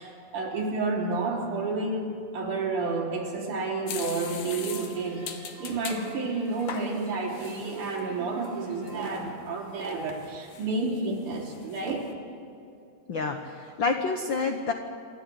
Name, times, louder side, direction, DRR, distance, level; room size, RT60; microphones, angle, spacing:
voice 1, 0.0-5.2 5.6-12.1, right 3 dB, 70° right, -1 dB, 4.5 m, -30 dB
sound 1, 3.9-6.0 6.5-8.0 8.4-8.5 8.9-9.3 9.8-11.0 11.3-11.9, left 7 dB, 65° left, 2.5 m, -41 dB
sound 2, 4.0-9.3, right 2 dB, 25° right, 7.9 m, -48 dB
voice 2, 13.1-14.7, left 4 dB, 80° left, 5 dB, 1.0 m, -28 dB
27.5 x 12.5 x 9.9 m, 2.5 s
omnidirectional pair, 3.8 m